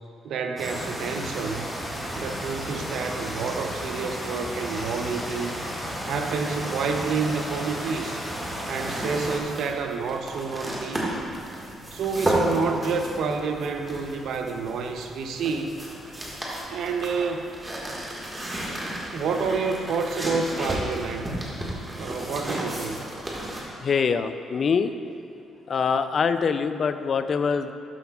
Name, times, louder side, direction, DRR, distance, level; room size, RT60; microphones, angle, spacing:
voice 1, 0.2-1.7 2.2-5.6 6.0-8.3 8.7-11.2 11.9-15.7 16.7-17.5 19.1-21.4 22.0-23.1, right 5 dB, 75° right, 5 dB, 0.6 m, -29 dB
sound 1, 0.6-9.4, equal, 5° left, 1.5 m, -33 dB
sound 2, 8.7-23.6, right 1 dB, 20° right, 1.6 m, -33 dB
voice 2, 23.8-24.9 25.7-27.7, left 6 dB, 50° left, 10 dB, 0.3 m, -24 dB
12.0 x 5.8 x 2.3 m, 2.7 s
cardioid pair, 90°, 0 cm